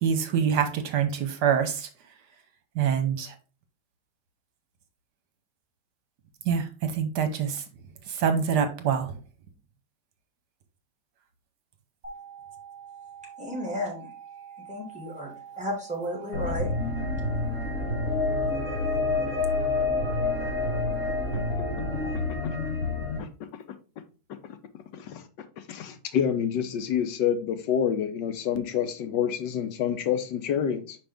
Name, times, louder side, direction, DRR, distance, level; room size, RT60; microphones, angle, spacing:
voice 1, 0.0-1.9 2.8-3.3 6.5-7.6 8.2-9.1, right 7 dB, 75° right, 1.4 m, -25 dB
sound 1, 12.0-22.0, right 8 dB, 35° right, 3.1 m, -45 dB
voice 2, 13.4-14.1 14.7-16.8, equal, 5° right, 2.3 m, -33 dB
sound 2, 16.3-23.2, left 3 dB, 55° left, 1.9 m, -28 dB
voice 3, 25.7-31.0, left 8 dB, 85° left, 1.5 m, -27 dB
5.4 x 5.3 x 3.5 m
omnidirectional pair, 1.9 m